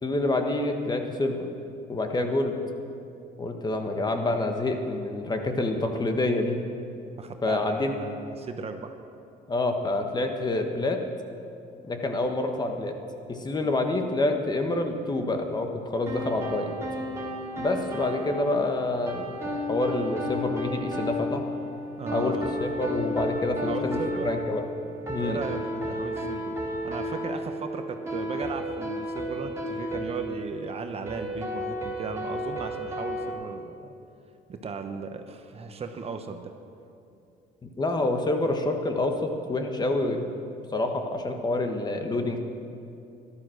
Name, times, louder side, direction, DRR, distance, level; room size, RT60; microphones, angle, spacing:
voice 1, 0.0-1.5 1.9-2.6 3.4-6.6 7.4-7.9 9.5-11.0 11.8-12.9 13.3-16.7 17.6-19.3 19.7-21.4 22.1-24.7 25.1-25.4 37.6-40.3 40.7-42.4, left 2 dB, 25° left, 5 dB, 1.4 m, -27 dB
voice 2, 7.2-8.9 22.0-22.5 23.6-24.3 25.2-26.6 26.8-33.9 34.5-36.5, right 5 dB, 35° right, 6 dB, 0.9 m, -36 dB
sound 1, 16.1-33.3, equal, 15° right, 3.1 m, -33 dB
13.0 x 12.0 x 6.4 m, 2.6 s
cardioid pair, 110°, 17 cm